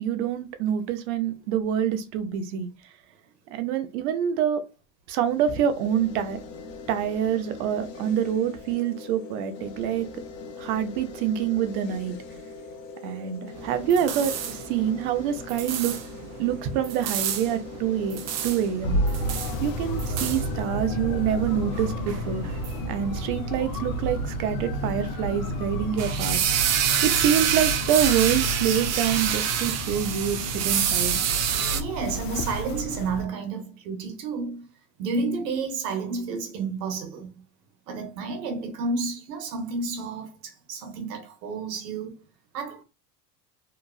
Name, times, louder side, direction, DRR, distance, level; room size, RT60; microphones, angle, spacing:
voice 1, 0.0-2.7 3.5-4.6 5.1-6.4 6.9-10.2 10.6-12.2 13.0-16.0 16.4-19.0 19.6-22.4 22.9-26.4 27.0-31.2, right 9 dB, 65° right, 0.8 m, -26 dB
sound 1, 5.2-24.3, left 4 dB, 85° left, 0.8 m, -42 dB
sound 2, 13.6-31.8, right 9 dB, 35° right, 0.5 m, -29 dB
sound 3, 18.8-33.2, equal, 45° left, 0.7 m, -31 dB
voice 2, 31.5-34.7 35.0-37.4 37.9-42.2 42.5-42.8, right 4 dB, 85° right, 1.1 m, -31 dB
2.9 x 2.4 x 2.3 m
supercardioid pair, 110°, 48 cm